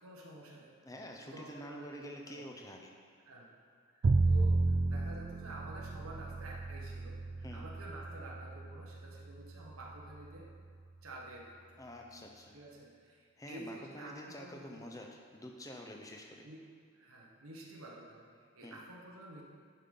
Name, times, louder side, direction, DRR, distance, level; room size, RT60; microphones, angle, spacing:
voice 1, 0.0-0.7 1.2-2.4 3.3-3.5 3.9-4.6 4.8-10.5 11.0-11.8 12.5-14.8 16.4-16.6 16.9-19.4, right 1 dB, 80° right, -2 dB, 1.1 m, -50 dB
voice 2, 0.8-2.9 7.4-7.7 11.8-12.5 13.4-16.5 18.6-18.8, equal, 15° left, 1 dB, 0.7 m, -48 dB
Bowed string instrument, 4.0-10.2, right 3 dB, 45° right, 0.3 m, -33 dB
10.5 x 5.6 x 3.8 m, 2.2 s
head